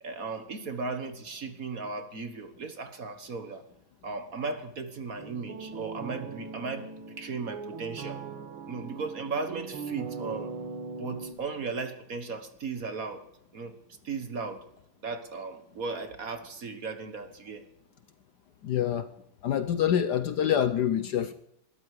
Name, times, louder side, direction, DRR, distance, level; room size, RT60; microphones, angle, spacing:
voice 1, 0.0-3.6 4.0-6.9 7.2-8.2 8.7-10.6 11.0-13.2 13.5-13.8 14.0-14.7 15.0-17.6, right 4 dB, 45° right, 9 dB, 1.5 m, -36 dB
sound 1, 5.2-11.3, right 4 dB, 80° right, 2.1 m, -40 dB
voice 2, 18.6-19.1 19.4-21.3, left 9 dB, 65° left, 12 dB, 1.1 m, -26 dB
20.5 x 14.0 x 4.9 m, 0.79 s
omnidirectional pair, 2.3 m